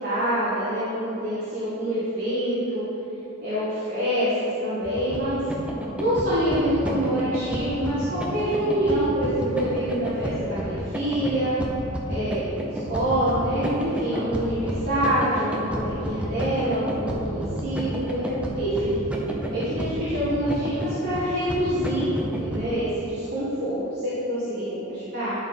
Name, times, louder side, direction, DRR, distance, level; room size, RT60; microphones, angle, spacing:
voice 1, 0.0-2.8 3.4-5.4 6.0-11.5 12.1-12.4 12.9-18.9 19.5-22.1 22.4-25.3, equal, 45° right, -12 dB, 1.8 m, -26 dB
sound 1, 4.8-22.6, equal, 5° right, 0.7 m, -31 dB
11.5 x 4.3 x 4.4 m, 3.0 s
head